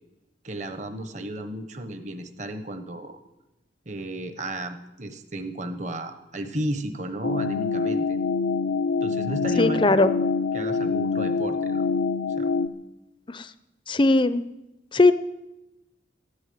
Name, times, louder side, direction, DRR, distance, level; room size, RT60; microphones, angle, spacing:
voice 1, 0.4-3.2 3.9-8.2 9.0-10.0 10.5-11.9 12.4-12.5, right 1 dB, 40° right, 8 dB, 1.1 m, -33 dB
sound 1, 7.2-12.7, left 4 dB, 80° left, 0.7 m, -25 dB
voice 2, 9.6-10.1 13.3-13.5 13.9-14.4 14.9-15.1, left 2 dB, 25° left, 13 dB, 0.6 m, -18 dB
14.0 x 9.9 x 9.4 m, 0.99 s
head